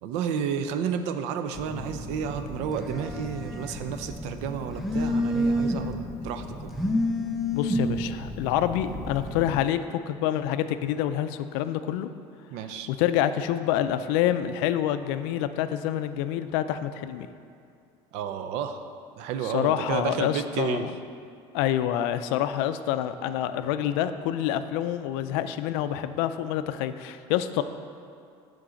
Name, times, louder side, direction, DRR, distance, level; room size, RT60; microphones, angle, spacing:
voice 1, 0.0-6.0 6.2-6.7 12.5-12.9 18.1-18.8 19.2-20.9, right 7 dB, 60° right, 9 dB, 0.5 m, -31 dB
Telephone, 1.5-9.6, equal, ahead, 0.5 m, -30 dB
voice 2, 7.5-12.1 12.9-17.3 19.4-20.9 21.5-27.6, left 11 dB, 80° left, 11 dB, 0.4 m, -27 dB
7.4 x 3.9 x 6.3 m, 2.4 s
cardioid pair, 165°, 13 cm